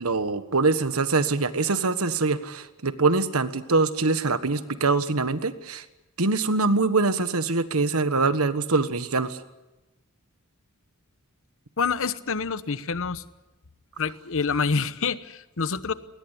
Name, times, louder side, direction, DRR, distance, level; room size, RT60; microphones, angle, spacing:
voice 1, 0.0-5.8 6.2-9.4, right 3 dB, 75° right, 11 dB, 1.5 m, -24 dB
voice 2, 11.8-13.2 14.0-15.9, left 5 dB, 65° left, 14 dB, 1.1 m, -27 dB
21.5 x 19.5 x 10.0 m, 1.0 s
head